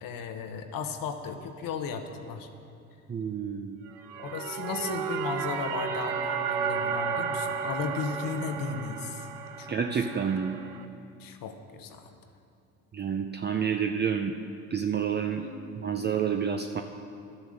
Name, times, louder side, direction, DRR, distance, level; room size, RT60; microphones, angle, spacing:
voice 1, 0.0-2.5 4.2-9.3 9.6-10.1 11.2-12.1 15.3-15.8 16.4-16.5, left 5 dB, 65° left, 6 dB, 1.1 m, -35 dB
voice 2, 3.1-3.8 9.7-10.5 12.9-14.4 14.7-15.4 15.8-16.8, right 7 dB, 30° right, 4 dB, 0.6 m, -29 dB
sound 1, 3.9-10.8, right 6 dB, 90° right, 0.7 m, -33 dB
12.0 x 7.3 x 6.4 m, 2.5 s
supercardioid pair, 75°, 36 cm